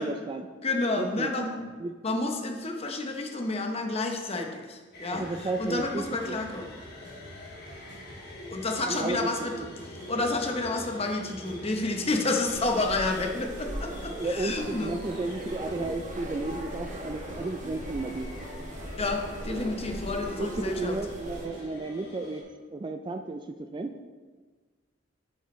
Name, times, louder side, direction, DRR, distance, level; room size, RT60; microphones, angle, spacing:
voice 1, 0.0-0.5 1.0-1.4 1.8-1.9 5.1-6.4 8.9-9.7 14.2-18.3 20.4-22.4 22.7-23.9, right 2 dB, 25° right, 6 dB, 0.3 m, -33 dB
voice 2, 0.6-1.7 2.0-6.7 8.5-9.5 10.1-15.0 19.0-21.0, left 2 dB, 35° left, 3 dB, 0.8 m, -30 dB
sound 1, 4.9-22.4, left 1 dB, 55° left, 1.8 m, -44 dB
sound 2, 5.1-21.7, equal, 85° right, 2.0 m, -48 dB
sound 3, 12.5-21.5, right 1 dB, 45° right, 0.9 m, -39 dB
8.6 x 6.8 x 3.1 m, 1.4 s
head